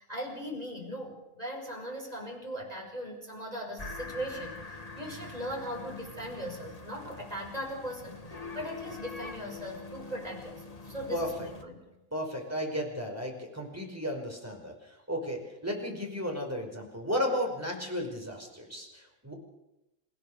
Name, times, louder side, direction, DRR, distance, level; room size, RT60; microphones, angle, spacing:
voice 1, 0.0-8.2 8.5-11.8, equal, 25° right, 0 dB, 5.8 m, -39 dB
sound 1, 3.8-11.6, left 3 dB, 30° left, 1.6 m, -44 dB
voice 2, 11.1-11.5 12.1-19.3, equal, 10° right, 1 dB, 5.3 m, -34 dB
28.5 x 16.0 x 6.9 m, 0.91 s
omnidirectional pair, 1.5 m